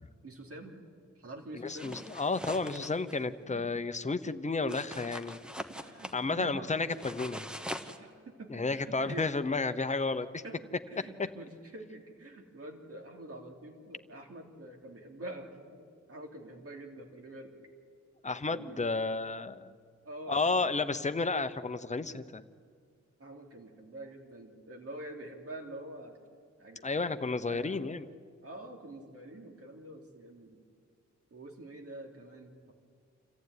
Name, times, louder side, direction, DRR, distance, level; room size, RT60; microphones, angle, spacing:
voice 1, 0.2-0.8 1.1-2.0 3.4-3.6 4.7-4.8 5.6-6.6 8.0-9.3 10.4-17.5 18.5-18.9 19.4-19.5 20.0-20.9 23.2-26.2 26.6-27.7 28.4-30.6 31.3-32.7, right 1 dB, 50° right, 2 dB, 3.3 m, -46 dB
voice 2, 1.6-5.4 6.1-7.4 8.5-10.4 18.2-19.7 20.3-22.4 26.8-28.1, left 3 dB, 25° left, 10 dB, 0.9 m, -32 dB
sound 1, 1.7-3.2 4.7-6.2 6.9-8.0, equal, 5° right, 1.2 m, -42 dB
27.0 x 14.5 x 9.6 m, 2.1 s
wide cardioid pair, 145°, 29 cm